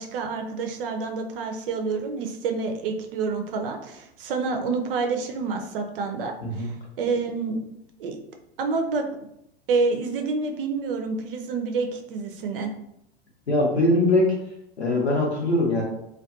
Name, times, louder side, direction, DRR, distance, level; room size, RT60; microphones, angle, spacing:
voice 1, 0.0-7.6 8.0-8.2 8.6-9.3 9.7-12.7, right 4 dB, 60° right, 4 dB, 0.5 m, -28 dB
voice 2, 13.5-14.3 14.8-15.8, left 1 dB, 85° left, -3 dB, 0.9 m, -21 dB
2.3 x 2.3 x 2.5 m, 0.81 s
figure-of-eight pair, 90°, 32 cm